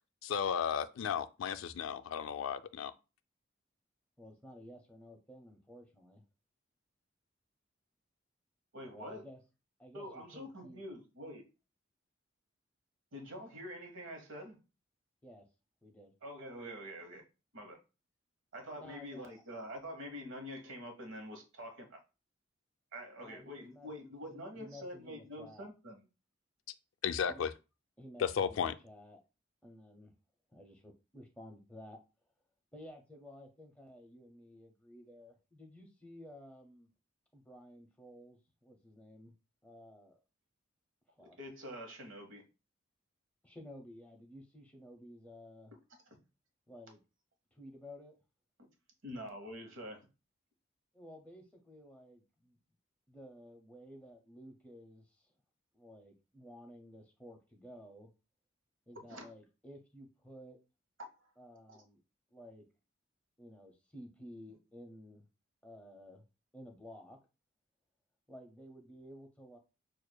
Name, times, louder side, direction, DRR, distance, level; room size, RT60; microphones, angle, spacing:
voice 1, 0.2-2.9 27.0-27.5 28.2-28.7, left 7 dB, 75° left, 0.3 m, -34 dB
voice 2, 4.2-6.2 8.8-9.4 9.8-10.8 15.2-15.5 15.8-16.1 18.8-19.4 23.2-25.7 27.3-27.4 28.0-29.2 29.6-30.1 30.5-32.0 32.7-36.9 37.3-39.3 39.6-40.2 41.2-41.4 43.4-45.7 46.7-47.0 47.5-48.2 50.9-52.6 53.1-55.3 55.7-58.1 58.9-60.6 61.4-62.0 62.3-62.7 63.4-65.3 65.6-66.2 66.5-67.2 68.3-69.6, equal, 5° left, 0.6 m, -53 dB
voice 3, 8.7-9.2 9.9-11.5 13.1-14.6 16.2-17.2 17.5-17.8 18.5-22.0 22.9-26.0 41.4-42.4 49.0-50.1 59.1-59.3 61.0-61.1 61.7-61.8, equal, 70° right, 1.1 m, -46 dB
6.5 x 2.4 x 2.2 m
head